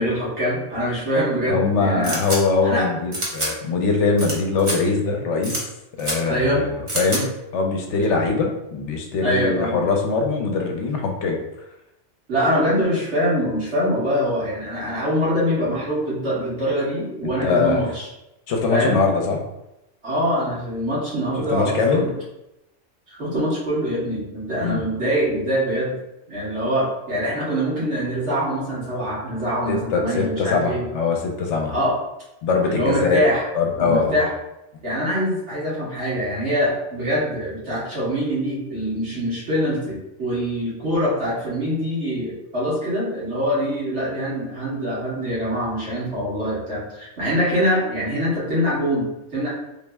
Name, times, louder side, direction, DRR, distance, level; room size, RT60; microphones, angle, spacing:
voice 1, 0.0-2.2 2.6-2.9 6.2-6.6 9.2-9.8 12.3-18.1 18.7-19.1 20.0-22.1 23.1-26.0 26.3-30.9 31.7-32.0 32.6-33.5 33.8-34.3 34.8-49.5, equal, 65° right, -9 dB, 1.7 m, -24 dB
voice 2, 1.5-5.6 6.0-6.7 6.9-11.4 17.2-17.8 18.5-19.4 21.5-22.0 24.6-24.8 29.7-31.7 32.4-33.2 33.5-34.2, left 4 dB, 80° left, 2 dB, 0.9 m, -22 dB
sound 1, 2.0-2.4 3.1-3.5 4.2-4.3 4.6-4.8 5.4-5.6 6.0-6.2 6.9-7.2, right 1 dB, 30° right, 0.7 m, -26 dB
3.5 x 2.0 x 3.4 m, 0.91 s
omnidirectional pair, 1.2 m